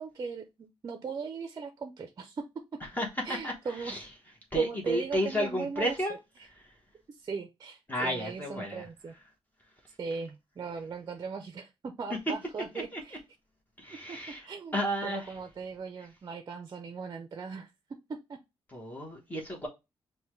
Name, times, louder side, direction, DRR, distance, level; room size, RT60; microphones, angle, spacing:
voice 1, 0.0-2.4 3.2-4.0 4.6-6.0 7.2-9.1 10.0-13.2 13.9-14.2 14.5-17.7 18.3-18.4, right 5 dB, 40° right, 0.5 m, -38 dB
voice 2, 2.8-4.1 4.5-6.2 6.4-6.8 7.9-8.9 12.7-13.0 13.8-14.5 14.7-15.3 16.0-16.1 18.7-19.7, equal, 20° left, 1.0 m, -33 dB
5.4 x 2.2 x 3.1 m
cardioid pair, 110°, 9 cm